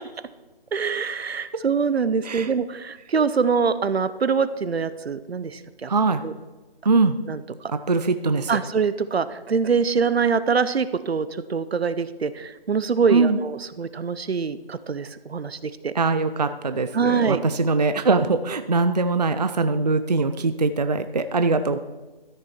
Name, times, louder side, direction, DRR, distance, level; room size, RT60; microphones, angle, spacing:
voice 1, 0.7-5.9 6.2-6.3 7.3-7.7 8.5-15.9 16.9-17.4, right 5 dB, 90° right, 14 dB, 0.8 m, -24 dB
voice 2, 5.9-6.2 6.8-7.2 7.9-8.5 13.1-13.4 15.9-21.8, right 3 dB, 45° right, 10 dB, 0.4 m, -22 dB
13.0 x 6.9 x 4.3 m, 1.2 s
figure-of-eight pair, 170°, 30 cm